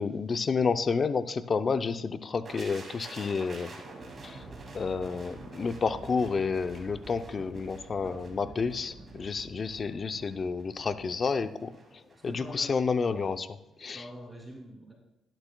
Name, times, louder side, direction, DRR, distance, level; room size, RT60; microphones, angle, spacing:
voice 1, 0.0-3.7 4.2-4.5 4.7-11.7 12.2-14.0, left 5 dB, 40° left, 11 dB, 0.5 m, -30 dB
sound 1, 2.4-12.3 12.6-12.8, right 3 dB, 40° right, 2.2 m, -47 dB
voice 2, 8.0-8.6 8.8-9.5 12.2-12.8 13.9-14.9, equal, 10° right, -1 dB, 2.6 m, -47 dB
12.0 x 11.0 x 2.2 m, 0.90 s
cardioid pair, 90°, 0 cm